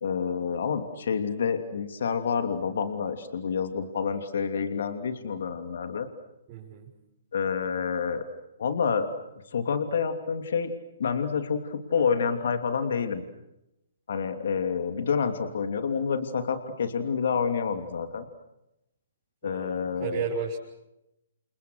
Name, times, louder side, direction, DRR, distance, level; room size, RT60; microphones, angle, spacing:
voice 1, 0.0-6.1 7.3-8.2 8.6-9.1 9.5-10.7 11.0-13.2 14.1-18.3 19.4-20.3, left 6 dB, 65° left, 8 dB, 2.9 m, -28 dB
voice 2, 6.5-6.9 19.4-20.6, right 6 dB, 35° right, -4 dB, 6.5 m, -33 dB
29.0 x 29.0 x 6.5 m, 0.89 s
hypercardioid pair, 130°, 0 cm